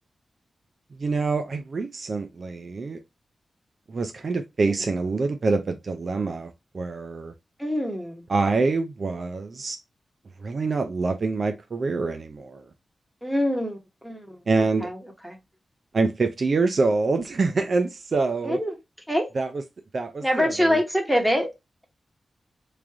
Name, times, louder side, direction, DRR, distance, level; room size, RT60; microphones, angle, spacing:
voice 1, 1.0-3.0 3.9-7.3 8.3-9.8 10.4-12.7 14.5-14.9 15.9-18.6 19.3-19.5 19.9-20.8, right 3 dB, 55° right, 0.4 m, -25 dB
voice 2, 7.6-8.2 13.2-14.4 14.8-15.0 15.2-15.4 18.4-18.7 19.1-19.3 20.2-21.5, equal, 5° right, 1.1 m, -25 dB
3.2 x 2.5 x 3.4 m
wide cardioid pair, 90°, 0 cm